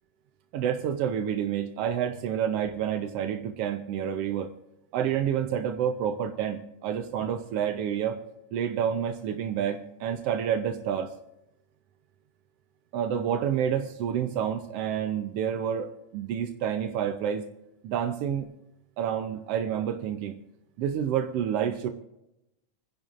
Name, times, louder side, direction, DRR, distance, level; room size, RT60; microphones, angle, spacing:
voice 1, 0.5-4.5 4.9-8.2 8.5-11.1 12.9-17.4 17.8-18.5 19.0-20.4 20.8-21.9, right 9 dB, 80° right, 6 dB, 1.3 m, -29 dB
28.5 x 10.5 x 2.5 m, 0.88 s
omnidirectional pair, 3.6 m